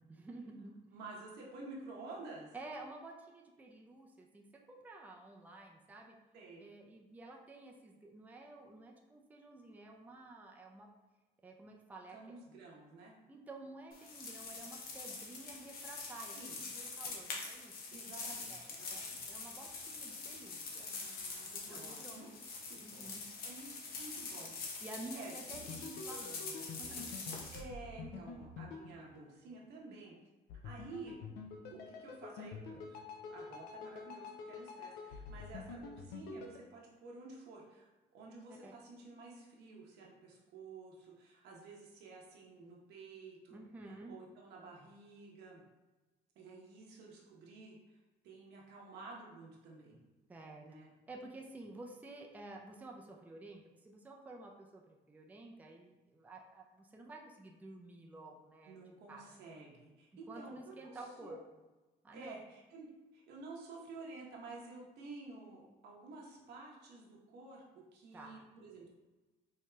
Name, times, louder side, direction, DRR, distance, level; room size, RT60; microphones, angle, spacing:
voice 1, 0.0-1.0 2.5-6.1 6.6-10.9 11.4-12.4 13.3-16.4 16.6-17.9 18.5-19.0 19.3-20.9 21.7-22.2 22.8-23.2 24.8-27.2 38.5-38.7 43.5-44.2 50.3-50.7 51.1-58.8 59.1-59.3 60.3-61.6 62.0-62.3 68.1-68.4, right 2 dB, 10° right, 1 dB, 0.4 m, -51 dB
voice 2, 0.9-2.5 6.3-6.7 12.1-13.1 15.0-15.2 16.4-16.6 17.9-19.3 20.8-22.3 22.7-24.7 25.1-25.3 27.5-30.1 30.6-31.2 31.7-33.0 33.3-43.6 43.9-45.6 46.4-48.0 48.2-50.0 50.6-50.9 58.7-61.4 62.1-62.9 63.1-67.6 67.9-68.9, right 3 dB, 80° right, -2 dB, 0.9 m, -51 dB
sound 1, 13.9-27.6, left 4 dB, 60° left, 0.8 m, -45 dB
sound 2, 25.5-29.8 30.5-36.6, left 4 dB, 80° left, 0.5 m, -48 dB
4.6 x 2.8 x 2.2 m, 1.1 s
cardioid pair, 110°, 17 cm